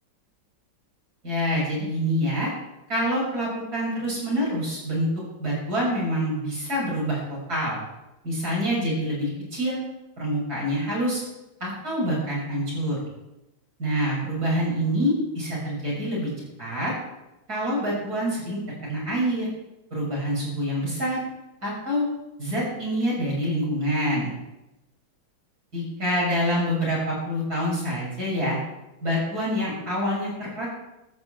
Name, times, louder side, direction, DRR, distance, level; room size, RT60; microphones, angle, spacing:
voice 1, 1.2-2.5 2.9-5.1 5.4-7.8 8.2-9.8 10.2-11.2 11.6-13.0 13.8-16.3 16.6-16.9 17.5-19.5 19.9-21.2 21.6-22.1 22.4-24.3 25.7-28.6 29.0-30.7, equal, 50° right, -5 dB, 7.1 m, -26 dB
14.0 x 7.3 x 8.0 m, 0.93 s
omnidirectional pair, 2.1 m